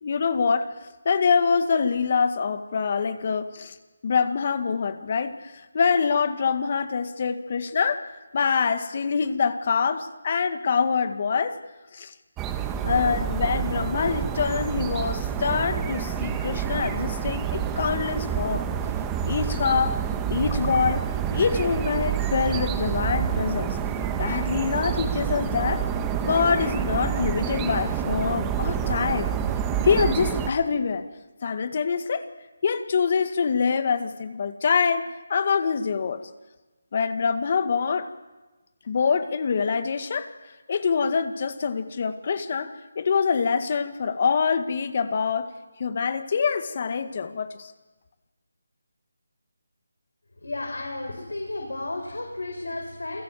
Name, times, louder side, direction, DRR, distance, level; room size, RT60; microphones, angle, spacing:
voice 1, 0.0-0.7 1.1-3.8 4.0-8.1 8.3-11.6 11.9-12.1 12.8-18.6 19.3-20.0 20.3-23.8 24.2-25.8 26.2-29.3 29.8-31.0 31.4-32.3 32.6-36.3 36.9-38.1 38.9-40.3 40.7-45.5 45.8-47.7, left 5 dB, 45° left, 10 dB, 2.0 m, -25 dB
sound 1, 12.4-30.5, right 8 dB, 15° right, 1.6 m, -28 dB
voice 2, 50.4-53.2, left 2 dB, 85° left, 2 dB, 5.6 m, -33 dB
28.5 x 23.0 x 7.7 m, 1.2 s
figure-of-eight pair, 160°, 0 cm